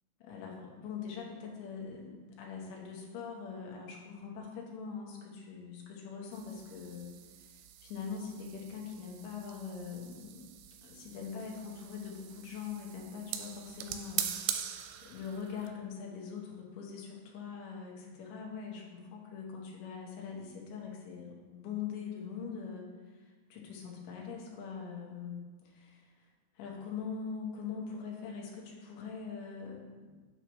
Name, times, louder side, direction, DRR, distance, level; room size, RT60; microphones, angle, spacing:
voice 1, 0.2-7.1 7.4-10.5 10.8-14.3 15.0-26.3 26.5-30.1, left 6 dB, 85° left, -1 dB, 3.4 m, -42 dB
sound 1, 6.3-15.7, right 10 dB, 85° right, 2.9 m, -42 dB
8.7 x 3.1 x 6.1 m, 1.4 s
omnidirectional pair, 5.1 m